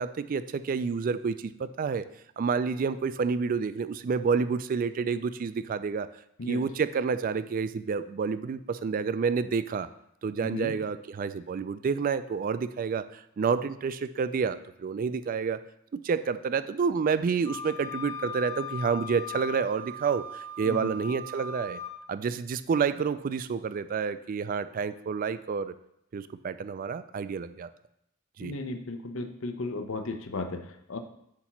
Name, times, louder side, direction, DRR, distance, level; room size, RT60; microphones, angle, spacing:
voice 1, 0.0-2.0 2.4-6.1 6.5-9.9 10.2-15.6 15.9-21.8 22.1-25.7 26.1-27.7 28.4-28.5, right 5 dB, 40° right, 13 dB, 0.3 m, -29 dB
voice 2, 10.4-10.8 20.6-20.9 28.4-31.0, left 2 dB, 70° left, 7 dB, 0.7 m, -35 dB
Wind instrument woodwind instrument, 17.4-22.0, left 3 dB, 20° left, 0.9 m, -39 dB
8.3 x 2.9 x 5.8 m, 0.76 s
head